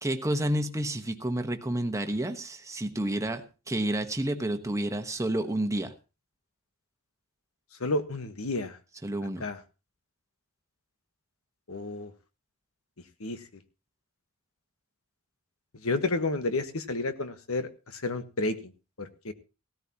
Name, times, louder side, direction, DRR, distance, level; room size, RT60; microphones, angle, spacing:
voice 1, 0.0-5.9 9.0-9.4, right 1 dB, 15° right, 7 dB, 1.2 m, -30 dB
voice 2, 7.8-8.8 9.4-9.6 11.7-12.1 13.2-13.4 15.8-18.7 19.0-19.3, left 2 dB, 75° left, 9 dB, 1.3 m, -31 dB
17.0 x 13.5 x 2.9 m, 0.31 s
head